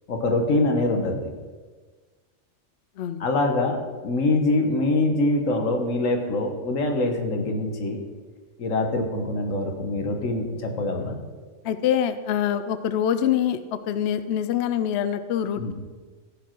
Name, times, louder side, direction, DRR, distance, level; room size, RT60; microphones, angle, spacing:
voice 1, 0.1-1.3 3.2-8.0 8.6-11.2 15.6-15.7, left 2 dB, 90° left, 4 dB, 1.5 m, -24 dB
voice 2, 3.0-3.3 11.6-13.6 13.9-15.7, left 9 dB, 65° left, 11 dB, 0.8 m, -25 dB
15.0 x 5.4 x 4.5 m, 1.4 s
omnidirectional pair, 1.3 m